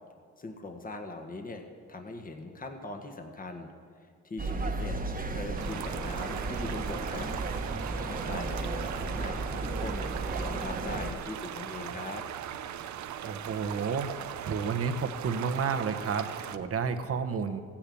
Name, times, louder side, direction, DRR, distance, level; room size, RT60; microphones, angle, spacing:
voice 1, 0.4-1.6 1.9-3.7 4.0-5.0 5.3-7.3 7.9-10.0 10.4-12.2, left 2 dB, 30° left, 4 dB, 1.6 m, -41 dB
sound 1, 4.4-11.1, right 3 dB, 30° right, 1.4 m, -34 dB
sound 2, 5.6-16.6, right 10 dB, 70° right, 0.8 m, -39 dB
voice 2, 13.2-14.1 14.4-17.6, right 6 dB, 50° right, 7 dB, 1.2 m, -31 dB
14.5 x 10.0 x 8.5 m, 2.1 s
cardioid pair, 90°, 30 cm